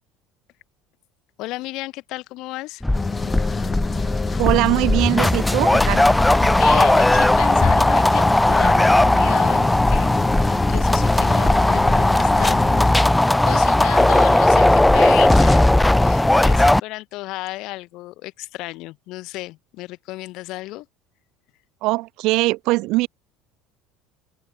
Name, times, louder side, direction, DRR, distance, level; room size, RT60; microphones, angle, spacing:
voice 1, 1.4-2.8 6.4-10.1 10.7-12.6 13.0-15.7 16.0-20.9, left 19 dB, 55° left, 1.1 m, -33 dB
sound 1, 2.8-16.8, left 1 dB, 5° left, 0.7 m, -17 dB
sound 2, 2.9-12.9, left 5 dB, 25° left, 1.3 m, -27 dB
voice 2, 4.4-6.1 21.8-23.1, right 21 dB, 55° right, 0.5 m, -21 dB
open air
figure-of-eight pair, 65°, 0 cm